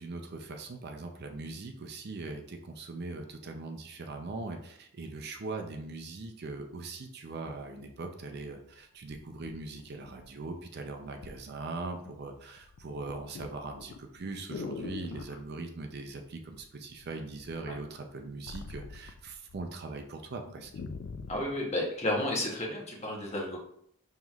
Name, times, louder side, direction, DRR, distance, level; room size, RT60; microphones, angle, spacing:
voice 1, 0.0-20.7, right 3 dB, 50° right, 4 dB, 0.5 m, -41 dB
sound 1, 9.1-10.6 11.2-11.4 11.8-12.3 12.6-15.4 16.6-17.1 17.4-19.7 20.0-20.1 20.4-21.5 22.2-22.3, left 4 dB, 55° left, 0.3 m, -43 dB
voice 2, 21.3-23.6, left 1 dB, 30° left, -2 dB, 0.9 m, -32 dB
5.5 x 3.1 x 2.3 m, 0.70 s
head